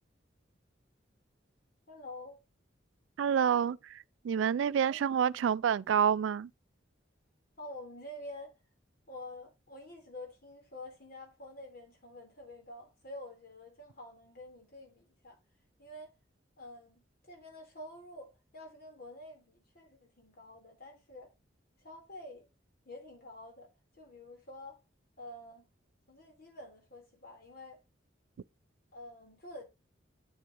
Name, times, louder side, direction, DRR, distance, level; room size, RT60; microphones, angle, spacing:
voice 1, 1.9-2.4 4.8-5.0 5.4-5.5 7.6-8.6 9.1-15.4 15.8-16.1 16.6-21.3 21.8-22.5 22.9-23.7 23.9-24.8 25.2-25.7 26.1-27.8 28.9-29.6, left 1 dB, 55° left, 3.6 m, -48 dB
voice 2, 3.2-6.5, right 8 dB, 80° right, 0.3 m, -28 dB
8.0 x 7.6 x 2.9 m
head